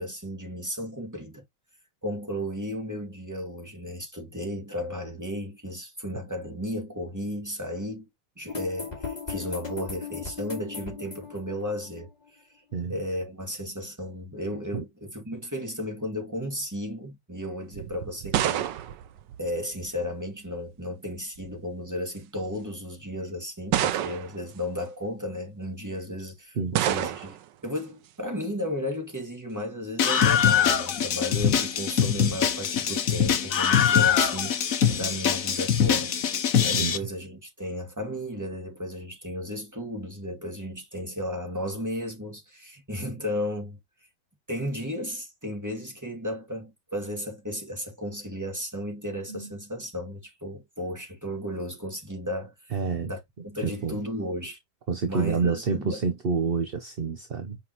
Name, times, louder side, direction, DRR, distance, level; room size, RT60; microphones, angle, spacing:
voice 1, 0.0-1.4 2.0-8.1 8.4-12.6 12.9-18.6 19.4-27.4 27.6-34.6 34.9-36.1 36.6-43.8 44.5-52.7 53.0-54.6 55.1-56.0, equal, 10° right, 2.4 m, -34 dB
sound 1, 8.5-12.3, left 6 dB, 25° left, 2.4 m, -37 dB
sound 2, 17.7-20.1 21.1-21.6 22.4-22.5 23.7-24.5 26.7-27.5, right 11 dB, 90° right, 1.4 m, -28 dB
Screaming, 30.0-37.0, left 8 dB, 55° left, 1.3 m, -23 dB
voice 2, 52.7-53.1 53.6-54.0 54.9-57.6, right 5 dB, 45° right, 0.8 m, -28 dB
6.1 x 5.5 x 3.0 m
omnidirectional pair, 1.8 m